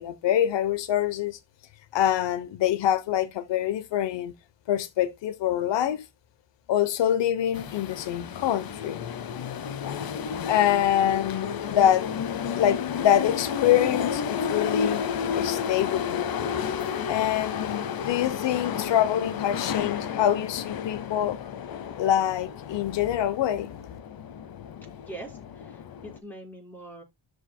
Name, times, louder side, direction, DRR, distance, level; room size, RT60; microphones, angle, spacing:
voice 1, 0.0-1.4 1.9-4.3 4.7-6.0 6.7-9.0 10.5-12.1 12.5-15.1 15.3-16.2 17.1-21.4 22.0-23.7, left 11 dB, 90° left, 0.9 m, -25 dB
sound 1, 7.5-26.2, left 7 dB, 55° left, 0.9 m, -32 dB
voice 2, 25.1-27.0, right 2 dB, 5° left, 5.0 m, -43 dB
13.0 x 4.9 x 2.2 m
cardioid pair, 130°, 43 cm